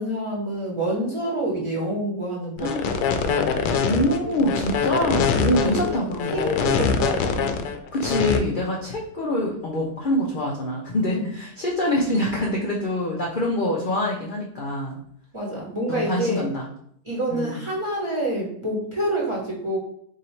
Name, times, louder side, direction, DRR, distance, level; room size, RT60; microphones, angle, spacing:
voice 1, 0.0-4.4 5.3-5.9 6.3-7.7 11.1-11.4 15.3-16.5 17.0-19.8, right 1 dB, 20° right, -4 dB, 1.0 m, -28 dB
sound 1, 2.6-8.4, left 6 dB, 80° left, 1.1 m, -23 dB
voice 2, 3.8-6.8 7.9-15.0 15.9-16.7 17.3-17.6, left 1 dB, 50° left, -2 dB, 0.6 m, -25 dB
3.8 x 2.7 x 4.3 m, 0.66 s
omnidirectional pair, 1.7 m